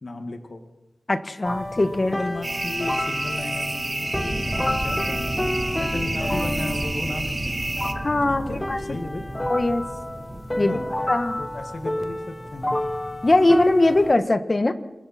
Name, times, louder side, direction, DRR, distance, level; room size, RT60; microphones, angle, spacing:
voice 1, 0.0-0.6 2.0-7.6 8.3-9.2 10.6-12.7, left 2 dB, 55° left, 5 dB, 1.9 m, -35 dB
voice 2, 1.1-2.2 8.0-8.4 8.7-8.8 9.5-9.8 10.6-10.8 11.1-11.4 13.2-14.7, left 2 dB, 35° left, 9 dB, 1.4 m, -20 dB
sound 1, 1.4-14.2, left 1 dB, 15° left, 1.2 m, -30 dB
sound 2, 2.4-7.9, right 2 dB, 30° right, 1.6 m, -30 dB
sound 3, 4.1-11.9, right 1 dB, 15° right, 4.9 m, -34 dB
29.0 x 21.5 x 4.4 m, 1.1 s
wide cardioid pair, 90°, 0 cm